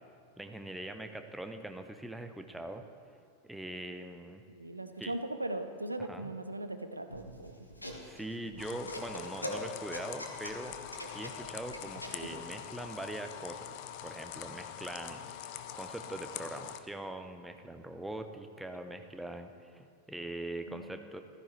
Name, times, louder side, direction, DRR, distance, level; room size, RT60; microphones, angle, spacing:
voice 1, 0.4-2.8 3.4-4.4 5.0-5.2 6.0-6.3 8.0-10.8 11.0-13.7 14.0-21.2, right 1 dB, 5° right, 7 dB, 0.8 m, -42 dB
voice 2, 4.5-7.5 8.4-8.5 20.7-21.0, right 1 dB, 85° right, 8 dB, 0.6 m, -39 dB
sound 1, 7.1-12.3, left 1 dB, 85° left, 1.3 m, -42 dB
sound 2, 8.6-16.8, left 10 dB, 45° left, 0.6 m, -44 dB
15.0 x 13.0 x 3.2 m, 2.3 s
figure-of-eight pair, 90°, 0 cm